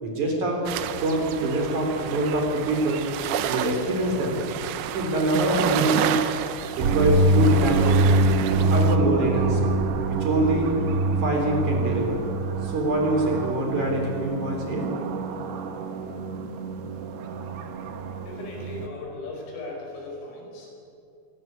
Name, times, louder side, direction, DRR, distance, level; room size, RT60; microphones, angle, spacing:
voice 1, 0.0-3.0 3.5-4.4 4.9-6.2 6.8-8.0 8.5-9.7 10.1-10.7 11.2-12.2 12.6-14.9, right 1 dB, 40° right, 1 dB, 4.7 m, -25 dB
sound 1, 0.7-9.0, right 10 dB, 80° right, 3.5 m, -30 dB
sound 2, 6.8-18.9, right 2 dB, 65° right, 3.1 m, -25 dB
voice 2, 18.2-20.7, left 2 dB, 85° left, 0 dB, 8.0 m, -37 dB
24.5 x 18.0 x 9.4 m, 2.6 s
omnidirectional pair, 5.7 m